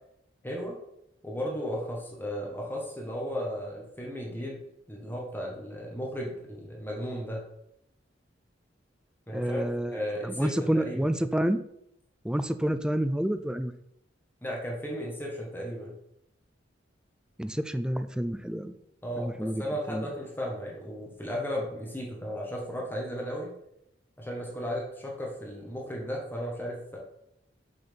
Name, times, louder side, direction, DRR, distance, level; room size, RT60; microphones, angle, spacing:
voice 1, 0.4-0.8 1.2-4.6 4.9-7.4 9.3-9.6 9.9-11.0 14.4-16.0 19.0-23.5 24.2-27.0, equal, 10° left, -2 dB, 1.3 m, -35 dB
voice 2, 9.3-11.6 12.2-13.7 17.4-18.7 19.2-20.1, right 1 dB, 5° right, 10 dB, 0.4 m, -29 dB
6.6 x 4.3 x 5.2 m, 0.77 s
head